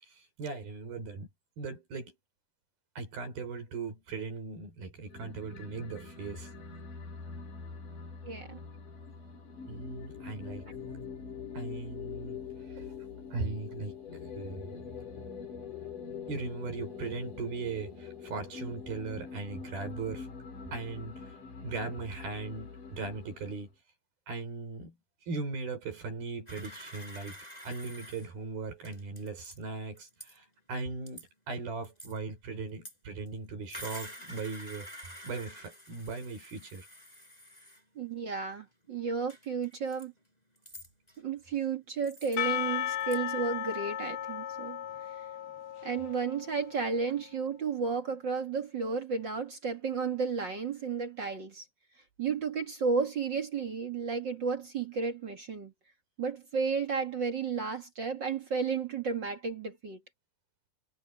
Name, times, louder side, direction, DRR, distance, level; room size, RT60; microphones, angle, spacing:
voice 1, 0.0-1.3 1.6-2.1 3.0-6.5 9.7-10.6 11.5-12.9 13.3-13.9 14.3-14.8 16.3-20.3 20.7-21.3 21.6-23.7 24.3-25.0 25.3-27.4 27.6-34.9 35.2-36.9, right 4 dB, 80° right, 7.2 m, -38 dB
sound 1, 5.1-23.7, left 6 dB, 60° left, 6.0 m, -44 dB
voice 2, 8.2-8.6 10.7-10.8 38.0-40.1 41.2-44.8 45.8-51.7 52.2-55.7 56.2-60.0, right 5 dB, 40° right, 1.9 m, -33 dB
sound 2, 26.5-28.3 28.8-29.6 30.0-30.4 31.1-31.3 31.8-32.2 32.8-32.9 33.3-33.4 33.7-37.8 38.5-38.6 39.3-40.1 40.6-41.2 41.6-41.7 42.0-42.6 43.0-43.2, equal, 10° left, 8.0 m, -48 dB
Percussion / Church bell, 42.4-47.1, left 11 dB, 80° left, 3.4 m, -36 dB
omnidirectional pair, 4.3 m